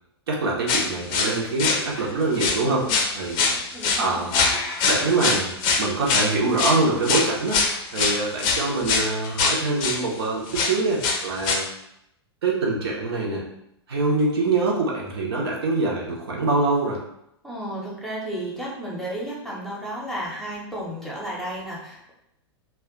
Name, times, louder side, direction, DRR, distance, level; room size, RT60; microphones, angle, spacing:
voice 1, 0.3-2.9 3.1-3.6 4.0-4.6 4.9-7.6 7.9-11.7 12.4-13.5 13.9-17.0, right 3 dB, 65° right, -3 dB, 0.8 m, -24 dB
sound 1, 0.7-2.1 2.3-2.6 2.9-10.0 10.5-11.6, left 4 dB, 35° left, 0.5 m, -23 dB
voice 2, 2.7-3.2 3.7-4.2 17.4-22.1, right 1 dB, ahead, -5 dB, 0.8 m, -33 dB
2.5 x 2.2 x 3.7 m, 0.80 s
figure-of-eight pair, 100°, 14 cm